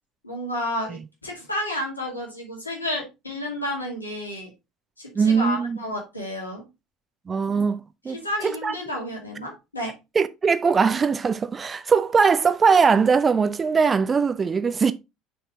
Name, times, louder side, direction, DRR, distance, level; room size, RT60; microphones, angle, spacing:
voice 1, 0.2-4.5 5.0-6.6 8.1-9.9, left 1 dB, 85° left, 2.3 m, -31 dB
voice 2, 5.1-5.8 7.3-8.7 10.1-14.9, right 5 dB, 25° right, 0.5 m, -21 dB
6.1 x 4.5 x 3.7 m
figure-of-eight pair, 65°, 0 cm